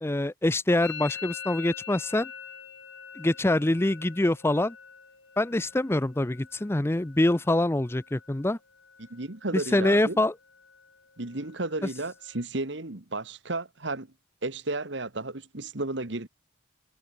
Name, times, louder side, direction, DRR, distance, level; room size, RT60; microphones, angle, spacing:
voice 1, 0.0-2.3 3.2-4.7 5.4-8.6 9.5-10.3, left 1 dB, 10° left, 0.5 m, -25 dB
Musical instrument, 0.8-8.5 8.7-9.3 9.6-10.1 10.4-12.4, left 8 dB, 70° left, 6.7 m, -45 dB
voice 2, 9.0-10.2 11.2-14.1 14.4-16.3, right 2 dB, 60° right, 1.8 m, -33 dB
head